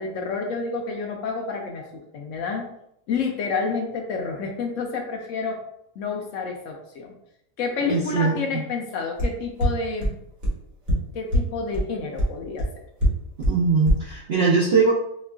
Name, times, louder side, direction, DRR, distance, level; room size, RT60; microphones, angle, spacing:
voice 1, 0.0-1.8 2.1-2.7 3.1-5.6 6.0-7.1 7.6-10.1 11.1-12.7, left 4 dB, 70° left, 1 dB, 0.7 m, -29 dB
voice 2, 7.9-8.6 13.5-14.9, right 4 dB, 75° right, -5 dB, 0.5 m, -21 dB
sound 1, 9.2-9.3 9.6-9.7 10.0-10.1 10.4-10.5 10.9-11.0 11.3-11.4 11.7-11.8 12.2-12.3 12.6-12.7 13.0-13.1 13.4-13.5 13.9-14.0, left 1 dB, 50° right, 1.3 m, -21 dB
4.4 x 2.4 x 2.3 m, 0.78 s
omnidirectional pair, 1.7 m